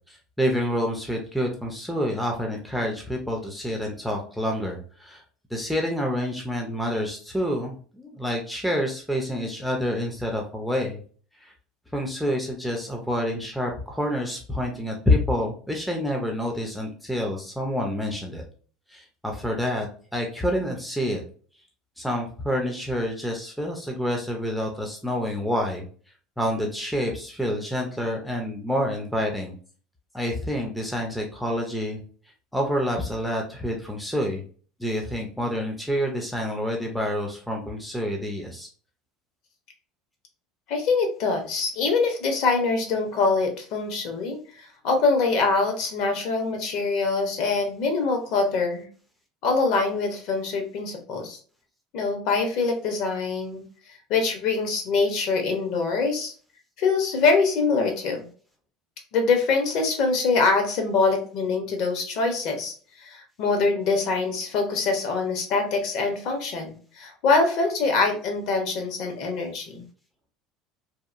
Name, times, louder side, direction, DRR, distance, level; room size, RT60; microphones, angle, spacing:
voice 1, 0.1-5.2 5.5-11.0 11.4-11.5 11.9-18.4 18.9-19.9 20.1-21.2 22.0-25.9 26.4-29.5 30.1-32.0 32.5-34.4 34.8-38.7, equal, ahead, 0 dB, 0.4 m, -28 dB
voice 2, 40.7-48.8 49.4-51.4 51.9-53.6 54.1-56.3 56.8-58.3 59.1-69.8, left 4 dB, 50° left, 4 dB, 0.7 m, -24 dB
2.8 x 2.3 x 2.4 m, 0.42 s
cardioid pair, 170°, 0 cm